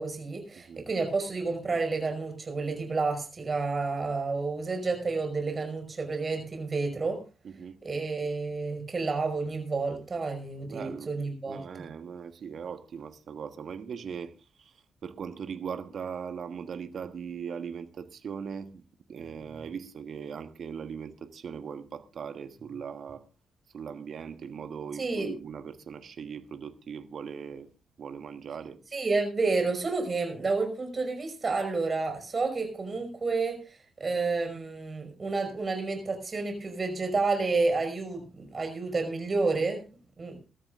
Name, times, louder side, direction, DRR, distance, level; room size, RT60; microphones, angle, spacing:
voice 1, 0.0-7.2 7.8-11.6 25.0-25.3 28.9-39.8 40.2-40.4, right 3 dB, 40° right, 5.4 m, -30 dB
voice 2, 7.4-7.8 10.6-11.1 11.5-14.3 14.6-14.7 15.0-18.8 19.1-23.2 23.7-27.7 28.0-28.8, right 7 dB, 55° right, 1.3 m, -39 dB
22.5 x 13.0 x 2.5 m
hypercardioid pair, 40°, 0 cm